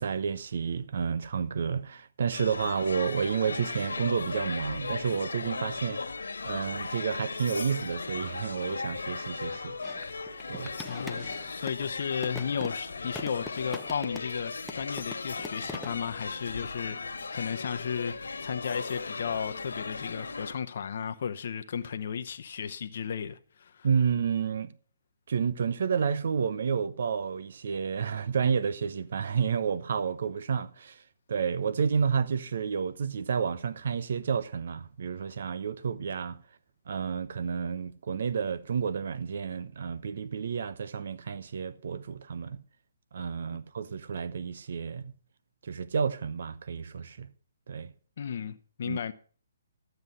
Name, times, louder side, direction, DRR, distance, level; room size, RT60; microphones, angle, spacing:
voice 1, 0.0-6.0 6.4-9.7 10.5-10.7 23.8-24.7 25.3-31.0 31.3-36.4 36.9-42.6 43.1-45.1 45.6-47.3 47.7-47.9 48.8-49.0, right 6 dB, 65° right, 0.9 m, -30 dB
sound 1, 2.3-20.5, left 4 dB, 85° left, 1.7 m, -37 dB
sound 2, 9.8-11.9 12.2-14.4 14.7-16.0, left 2 dB, ahead, 0.8 m, -43 dB
voice 2, 10.9-23.9 48.2-49.1, left 7 dB, 60° left, 0.8 m, -34 dB
12.5 x 7.9 x 5.5 m
hypercardioid pair, 145°, 0 cm